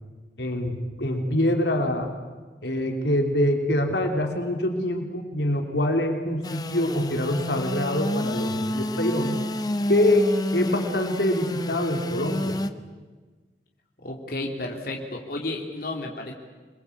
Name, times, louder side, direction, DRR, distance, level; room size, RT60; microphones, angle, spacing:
voice 1, 0.4-2.1 2.6-9.4 9.9-12.6, left 1 dB, 75° left, 3 dB, 3.1 m, -25 dB
Engine / Sawing, 6.4-12.7, left 1 dB, 20° left, 0.9 m, -29 dB
voice 2, 14.0-16.3, left 2 dB, 55° left, 1 dB, 3.0 m, -32 dB
27.0 x 22.0 x 8.4 m, 1.4 s
head